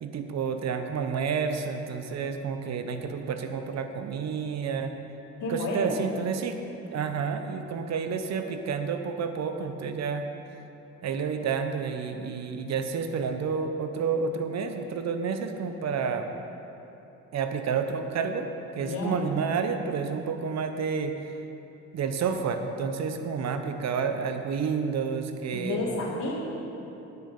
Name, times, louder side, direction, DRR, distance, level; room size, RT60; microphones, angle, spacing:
voice 1, 0.0-4.9 5.5-6.6 6.9-10.2 11.0-16.3 17.3-21.1 21.9-25.8, right 6 dB, 60° right, 7 dB, 0.9 m, -30 dB
voice 2, 5.4-5.9 18.7-19.2 25.5-26.3, left 2 dB, 70° left, -5 dB, 2.7 m, -31 dB
9.8 x 6.7 x 6.8 m, 3.0 s
cardioid pair, 90°, 30 cm